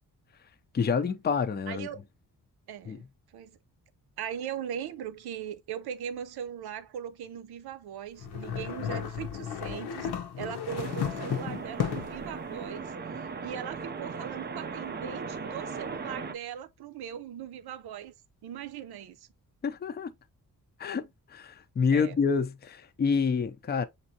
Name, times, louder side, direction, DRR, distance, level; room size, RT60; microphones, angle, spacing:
voice 1, 0.7-1.9 2.9-3.0 19.6-20.1 20.8-23.9, left 5 dB, 25° left, 0.5 m, -28 dB
voice 2, 1.7-2.0 2.7-3.1 3.3-3.6 4.2-18.1 18.4-19.3 21.9-22.2, right 9 dB, 85° right, 0.7 m, -39 dB
sound 1, 8.2-12.3, left 8 dB, 90° left, 0.9 m, -34 dB
sound 2, 10.7-16.3, right 5 dB, 30° right, 0.4 m, -38 dB
7.2 x 2.6 x 2.7 m
wide cardioid pair, 145°, 37 cm